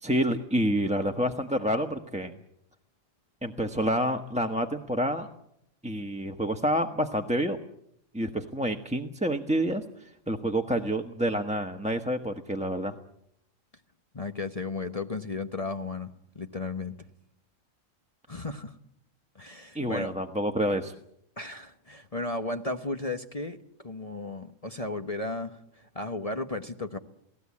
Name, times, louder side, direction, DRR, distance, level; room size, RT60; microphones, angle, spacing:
voice 1, 0.0-2.3 3.4-5.3 5.8-7.6 8.1-12.9 19.7-20.9, equal, 5° right, 5 dB, 1.2 m, -28 dB
voice 2, 14.1-17.1 18.3-18.8 19.3-20.1 21.4-27.0, left 2 dB, 30° left, 7 dB, 1.1 m, -35 dB
28.5 x 18.5 x 8.6 m, 0.77 s
omnidirectional pair, 1.4 m